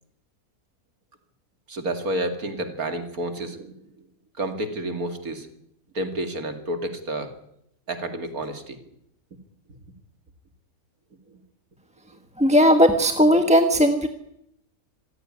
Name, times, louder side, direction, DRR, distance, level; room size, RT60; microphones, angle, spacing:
voice 1, 1.7-3.8 4.4-5.5 5.9-7.3 7.9-8.8 13.4-13.5, right 1 dB, 80° right, 7 dB, 2.9 m, -30 dB
voice 2, 12.4-14.1, equal, 5° right, 6 dB, 1.3 m, -17 dB
26.0 x 15.5 x 9.7 m, 0.77 s
omnidirectional pair, 1.5 m